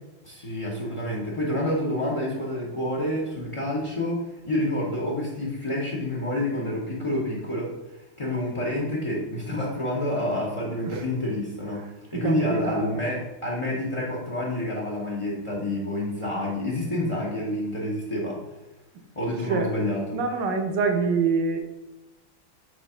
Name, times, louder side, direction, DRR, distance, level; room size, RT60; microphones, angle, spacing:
voice 1, 0.2-11.9 12.1-18.4 19.2-20.2, left 1 dB, 40° left, -4 dB, 0.4 m, -28 dB
voice 2, 12.1-13.0 19.4-19.9 20.1-21.6, right 5 dB, 70° right, 4 dB, 1.4 m, -26 dB
5.1 x 3.5 x 5.4 m, 0.99 s
omnidirectional pair, 2.1 m